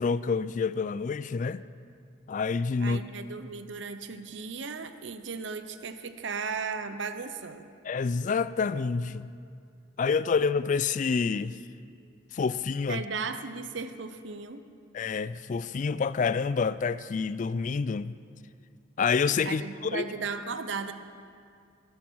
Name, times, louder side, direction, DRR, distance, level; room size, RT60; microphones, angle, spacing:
voice 1, 0.0-1.6 2.3-3.0 7.8-9.3 10.0-11.6 12.3-13.0 14.9-18.1 19.0-19.6 19.9-20.0, left 5 dB, 40° left, 0.3 m, -28 dB
voice 2, 2.8-7.7 12.9-14.6 19.4-20.9, right 5 dB, 65° right, 0.6 m, -36 dB
12.0 x 11.0 x 6.2 m
head